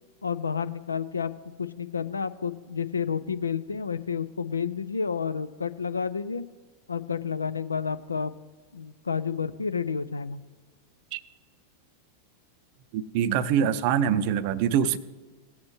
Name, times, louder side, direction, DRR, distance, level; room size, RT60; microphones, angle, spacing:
voice 1, 0.2-1.3 1.6-6.4 6.9-8.3 8.7-10.4, left 6 dB, 75° left, 12 dB, 0.4 m, -30 dB
voice 2, 12.9-15.0, right 8 dB, 45° right, 15 dB, 0.5 m, -24 dB
17.5 x 7.3 x 3.1 m, 1.4 s
figure-of-eight pair, 90°, 0 cm